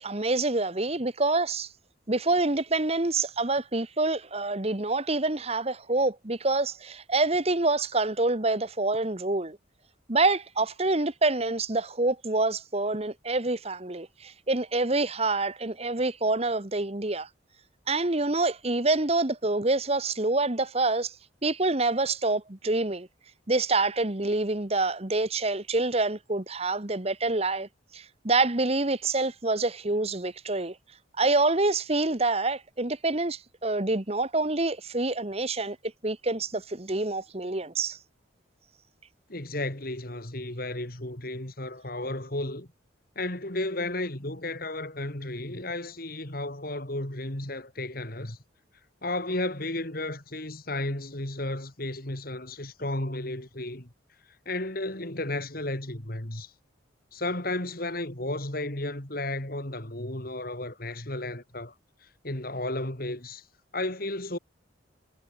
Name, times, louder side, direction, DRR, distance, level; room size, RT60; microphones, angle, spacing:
voice 1, 0.0-1.7 2.1-9.6 10.1-17.3 17.9-21.1 21.4-23.1 23.5-30.8 31.2-35.8 36.0-38.0, right 2 dB, 30° right, 1.4 m, -26 dB
voice 2, 39.3-42.7 43.1-48.4 49.0-53.9 54.4-56.5 57.1-61.7 62.0-63.4 63.7-64.4, left 2 dB, 50° left, 3.3 m, -33 dB
head